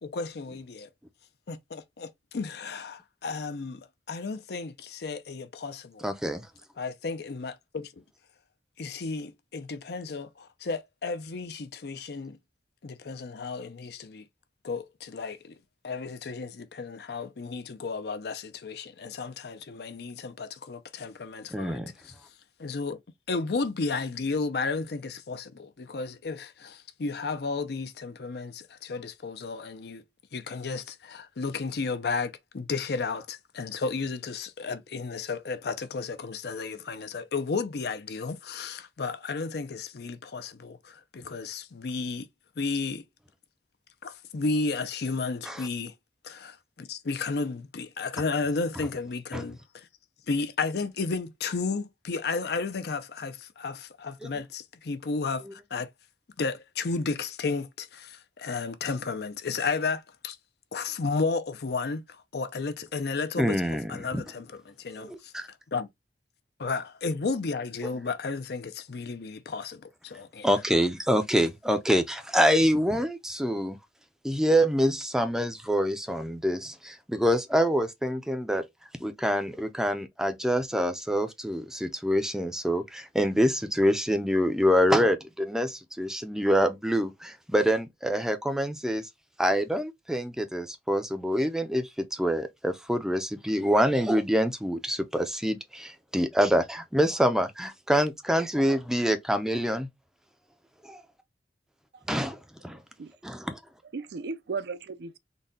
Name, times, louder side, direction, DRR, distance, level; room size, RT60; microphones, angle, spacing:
voice 1, 0.0-0.9 1.5-6.1 6.8-8.0 8.8-12.4 12.8-14.3 14.6-15.6 15.8-22.1 22.6-23.0 23.3-30.0 30.3-42.3 42.6-43.0 44.0-45.9 46.2-49.9 50.3-55.9 56.4-60.4 60.7-65.9 66.6-70.5, left 4 dB, 65° left, 0.5 m, -33 dB
voice 2, 6.0-6.5 21.5-21.9 45.5-45.7 49.3-49.4 63.4-64.2 65.0-65.5 70.4-73.8 74.2-78.7 79.0-89.0 89.4-99.9 100.8-101.0 102.1-102.8 103.2-103.6, equal, 5° right, 0.5 m, -26 dB
voice 3, 102.7-103.1 103.9-105.2, right 4 dB, 65° right, 0.4 m, -36 dB
4.0 x 2.2 x 3.6 m
head